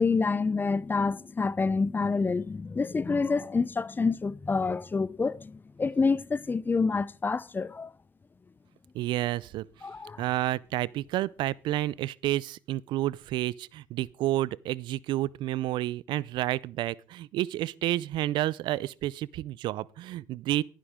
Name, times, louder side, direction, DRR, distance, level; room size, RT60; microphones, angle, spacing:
voice 1, 0.0-7.9 9.8-10.2, left 4 dB, 25° left, 0.6 m, -27 dB
voice 2, 8.9-9.7 10.2-20.6, right 15 dB, 70° right, 0.4 m, -30 dB
13.0 x 11.0 x 3.6 m
supercardioid pair, 75°, 8 cm